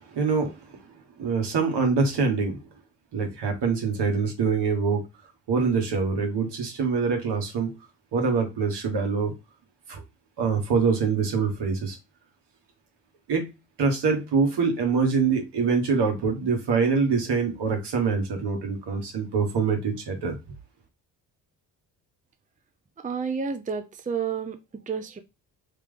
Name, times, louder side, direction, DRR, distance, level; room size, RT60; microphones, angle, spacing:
voice 1, 0.1-0.5 1.2-2.6 3.1-5.0 5.5-7.7 8.1-9.3 9.9-10.0 10.4-12.0 13.3-13.5 13.8-20.3, right 5 dB, 65° right, 1.5 m, -24 dB
voice 2, 23.0-25.2, right 6 dB, 20° right, 0.6 m, -30 dB
3.4 x 2.9 x 3.7 m
supercardioid pair, 60°, 43 cm